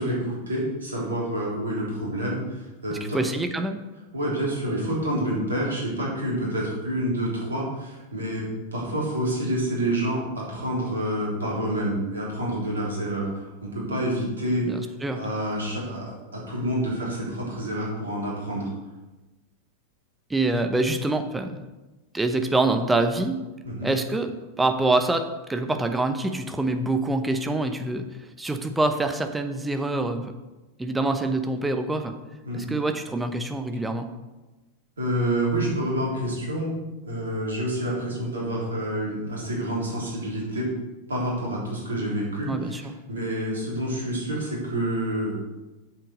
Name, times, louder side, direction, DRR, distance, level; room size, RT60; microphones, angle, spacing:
voice 1, 0.0-3.2 4.1-14.7 15.1-18.7 23.6-23.9 32.5-32.6 35.0-36.7 37.0-40.7 41.1-45.3, right 1 dB, 70° right, -4 dB, 3.5 m, -28 dB
voice 2, 2.9-3.8 14.6-15.3 20.3-21.7 22.1-23.4 23.8-24.3 24.6-28.1 28.4-30.3 30.8-32.1 32.5-34.1 42.4-42.9, right 2 dB, 10° right, 7 dB, 0.9 m, -25 dB
7.9 x 7.4 x 5.2 m, 1.1 s
figure-of-eight pair, 90°, 0 cm